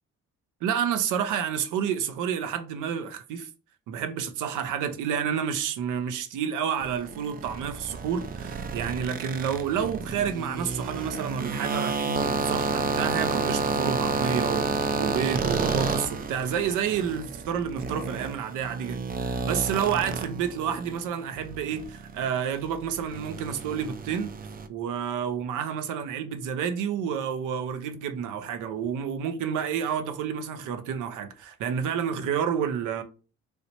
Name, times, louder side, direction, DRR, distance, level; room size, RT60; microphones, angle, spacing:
voice 1, 0.6-3.5 3.9-24.3 24.7-33.0, right 8 dB, 90° right, 0.6 m, -30 dB
sound 1, 6.8-21.0 21.3-24.7, right 4 dB, 30° right, 0.4 m, -30 dB
3.2 x 2.8 x 2.8 m
cardioid pair, 90°, 30 cm